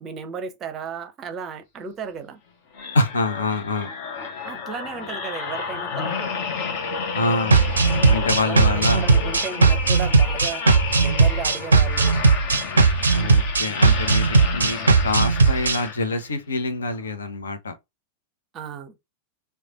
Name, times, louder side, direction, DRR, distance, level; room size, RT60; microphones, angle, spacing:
voice 1, 0.0-2.4 4.4-6.3 8.4-10.6 11.0-12.2 18.5-18.9, right 6 dB, 30° right, 0.6 m, -34 dB
sound 1, 2.7-16.3 16.9-17.1, left 5 dB, 50° left, 0.9 m, -31 dB
voice 2, 2.9-3.9 7.1-7.7 8.1-9.1 13.1-17.8, left 2 dB, 70° left, 0.6 m, -26 dB
sound 2, 7.5-15.8, right 4 dB, 75° right, 0.4 m, -18 dB
3.2 x 2.2 x 3.5 m
figure-of-eight pair, 90°, 0 cm